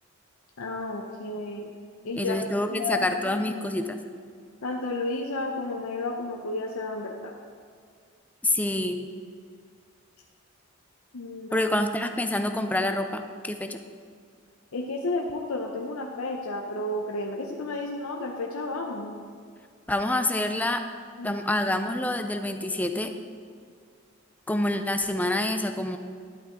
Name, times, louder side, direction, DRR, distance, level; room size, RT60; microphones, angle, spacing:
voice 1, 0.6-1.7 2.0-3.6 4.6-7.4 11.1-11.7 14.7-19.2 21.2-21.4, left 2 dB, 80° left, 1 dB, 0.7 m, -32 dB
voice 2, 2.2-4.0 8.4-9.1 11.5-13.8 19.9-20.8 21.2-23.1 24.5-26.0, left 1 dB, 5° left, 7 dB, 0.5 m, -27 dB
11.5 x 8.2 x 3.7 m, 2.1 s
head